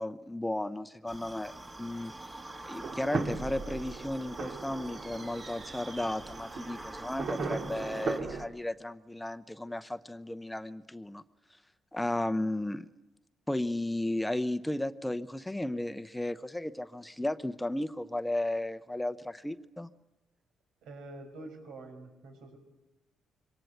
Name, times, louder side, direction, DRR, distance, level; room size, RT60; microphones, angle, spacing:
voice 1, 0.0-2.1 2.6-11.2 11.9-12.9 13.5-19.9, left 1 dB, 10° left, 12 dB, 0.8 m, -34 dB
sound 1, 1.1-8.2, right 2 dB, 25° right, 1.9 m, -46 dB
sound 2, 2.8-8.5, right 4 dB, 55° right, 2.6 m, -38 dB
voice 2, 20.8-22.6, right 2 dB, 80° right, 5 dB, 5.7 m, -46 dB
24.0 x 19.0 x 8.2 m, 1.0 s
cardioid pair, 90°, 0 cm